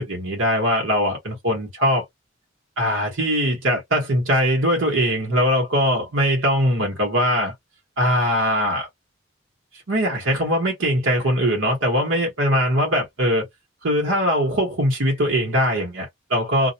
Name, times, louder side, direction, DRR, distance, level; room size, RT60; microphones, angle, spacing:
voice 1, 0.0-2.0 2.8-7.5 8.0-8.9 9.9-13.4 13.8-16.7, equal, 85° right, 1.0 m, -21 dB
2.3 x 2.1 x 2.6 m
head